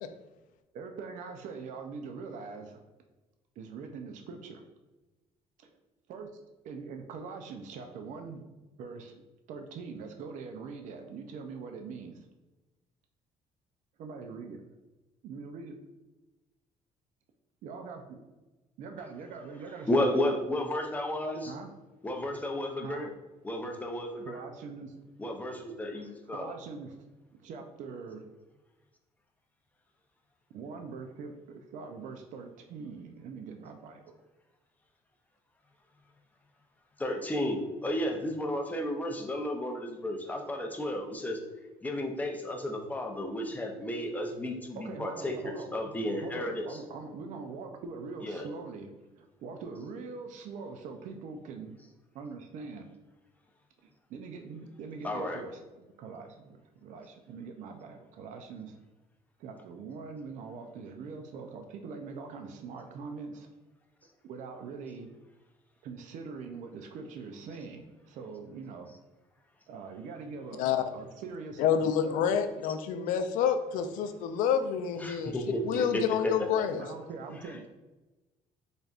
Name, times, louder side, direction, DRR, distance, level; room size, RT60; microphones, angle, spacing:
voice 1, 0.7-2.8 3.6-4.6 5.6-5.7 6.1-8.4 8.8-9.2 9.5-12.3 14.0-14.6 15.2-15.8 17.6-18.2 18.8-20.2 21.4-21.7 22.8-23.1 24.2-25.0 25.9-27.0 27.4-28.3 30.5-34.2 44.7-45.7 46.1-51.7 52.1-52.9 53.8-58.7 59.4-63.5 64.2-65.1 65.8-68.9 69.7-72.2 76.8-77.7, right 4 dB, 70° right, 5 dB, 0.5 m, -43 dB
voice 2, 19.8-21.5 22.0-23.1 23.4-24.4 25.2-26.6 37.0-41.4 41.8-46.8 48.2-48.5 55.0-55.4 75.0-76.7 77.4-77.7, left 1 dB, 10° left, 2 dB, 0.6 m, -33 dB
voice 3, 71.6-75.3 75.6-76.8, left 8 dB, 85° left, 8 dB, 0.4 m, -28 dB
3.9 x 3.4 x 2.4 m, 1.1 s
cardioid pair, 115°, 13 cm